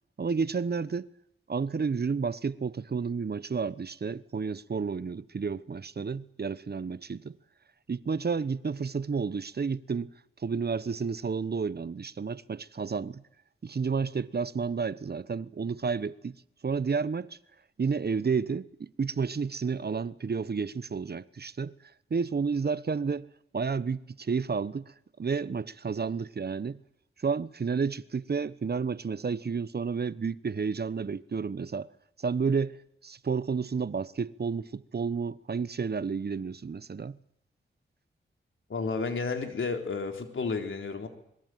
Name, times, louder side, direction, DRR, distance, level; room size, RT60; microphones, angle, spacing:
voice 1, 0.2-1.1 1.5-7.4 7.9-10.1 10.4-13.2 13.6-16.3 16.6-17.4 17.8-21.7 22.1-23.3 23.5-24.9 25.2-26.8 27.2-31.9 32.2-32.8 33.0-37.2, right 5 dB, 50° right, 1.1 m, -31 dB
voice 2, 38.7-41.1, left 4 dB, 70° left, 3.9 m, -32 dB
26.0 x 21.5 x 9.3 m
cardioid pair, 65°, 21 cm